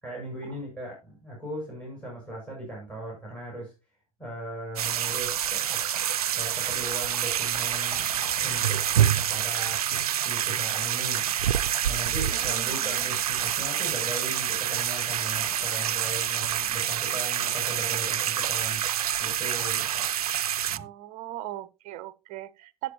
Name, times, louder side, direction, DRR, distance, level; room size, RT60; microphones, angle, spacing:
voice 1, 0.0-3.7 4.2-5.8 6.3-8.1 8.4-8.8 9.1-9.9 10.2-11.2 11.9-18.8 19.2-20.0 20.7-20.8, right 1 dB, 5° left, 6.6 m, -38 dB
sound 1, 4.8-20.8, right 10 dB, 70° right, 0.4 m, -27 dB
sound 2, 5.4-5.9 6.1-6.2 6.6-19.0, left 4 dB, 70° left, 3.6 m, -50 dB
voice 2, 12.3-13.2 20.7-22.9, right 14 dB, 40° right, 0.7 m, -39 dB
13.5 x 7.8 x 2.8 m
figure-of-eight pair, 90°, 20 cm